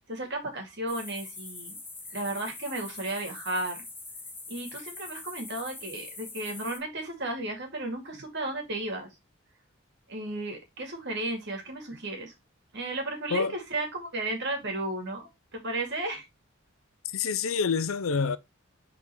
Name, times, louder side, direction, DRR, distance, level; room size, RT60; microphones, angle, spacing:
voice 1, 0.1-1.8 2.1-3.8 4.5-9.2 10.1-12.3 12.7-16.2, right 2 dB, 60° right, 2.3 m, -34 dB
sound 1, 0.9-6.8, left 3 dB, 10° left, 1.3 m, -43 dB
voice 2, 17.1-18.4, left 5 dB, 90° left, 0.6 m, -27 dB
5.2 x 4.1 x 4.6 m
head